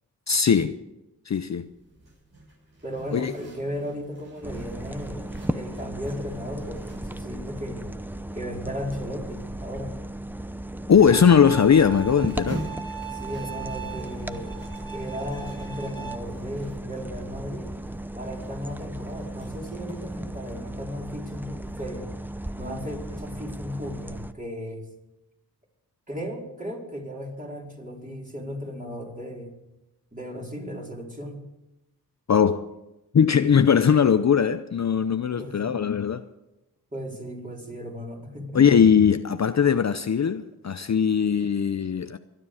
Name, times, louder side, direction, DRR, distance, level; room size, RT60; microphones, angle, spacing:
voice 1, 0.3-0.8 1.3-1.7 3.1-3.3 10.9-12.6 32.3-32.7 33.1-36.2 38.5-42.2, left 7 dB, 45° left, 0.6 m, -20 dB
Zipper (clothing), 1.6-20.1, right 1 dB, 75° right, 7.1 m, -45 dB
voice 2, 2.8-7.9 8.3-10.0 13.1-14.6 14.9-17.7 18.1-22.1 22.6-24.9 26.1-29.5 30.1-31.4 35.3-35.6 36.9-38.6, equal, 20° right, 4.6 m, -36 dB
sound 1, 4.4-24.3, right 1 dB, 5° right, 0.7 m, -36 dB
Bowed string instrument, 11.1-16.1, right 9 dB, 10° left, 1.5 m, -39 dB
23.5 x 9.9 x 4.9 m
cardioid pair, 65°, 38 cm